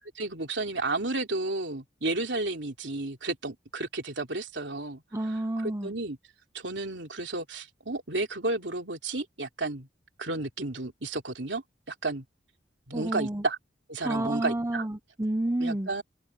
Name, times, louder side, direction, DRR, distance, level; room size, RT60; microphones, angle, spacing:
voice 1, 0.0-5.0 5.6-6.2 6.5-9.9 10.2-12.2 12.9-13.6 13.9-14.8 15.6-16.0, right 2 dB, 70° right, 3.2 m, -32 dB
voice 2, 5.1-5.9 12.9-13.4 14.0-15.9, right 1 dB, 15° right, 0.8 m, -30 dB
open air
head